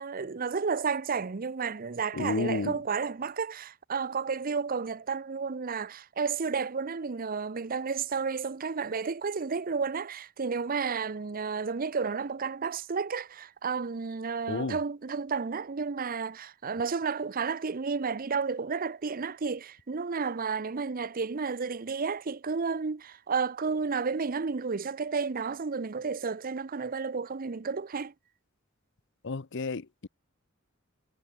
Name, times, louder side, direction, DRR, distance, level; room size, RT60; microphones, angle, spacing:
voice 1, 0.0-28.1, right 5 dB, 45° right, 0.6 m, -32 dB
voice 2, 2.1-2.8 14.5-14.8 29.2-30.1, left 3 dB, 60° left, 0.8 m, -31 dB
head